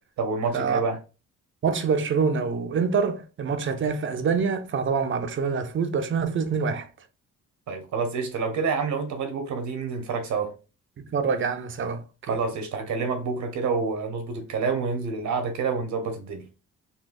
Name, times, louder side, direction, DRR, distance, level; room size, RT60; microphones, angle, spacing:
voice 1, 0.2-1.0 7.7-10.5 12.3-16.4, right 4 dB, 70° right, 1.1 m, -28 dB
voice 2, 1.6-6.9 11.1-12.0 12.3-12.4, right 5 dB, 40° right, 0.6 m, -25 dB
4.0 x 2.3 x 2.5 m
cardioid pair, 90°, 30 cm